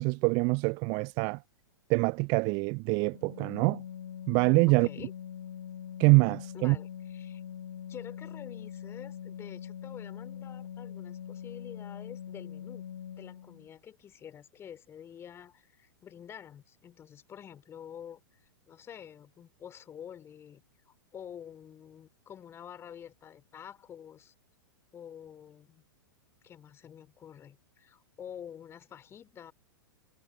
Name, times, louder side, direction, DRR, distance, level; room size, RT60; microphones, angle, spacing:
voice 1, 0.0-1.4 1.9-3.8 4.3-4.9 6.0-6.8, right 32 dB, 35° right, 0.4 m, -25 dB
Organ, 3.1-13.7, left 9 dB, 60° left, 3.8 m, -43 dB
voice 2, 4.7-5.1 6.5-7.4 7.9-12.9 13.2-24.3 24.9-25.8 26.4-29.5, left 9 dB, 20° left, 3.1 m, -48 dB
figure-of-eight pair, 100°, 12 cm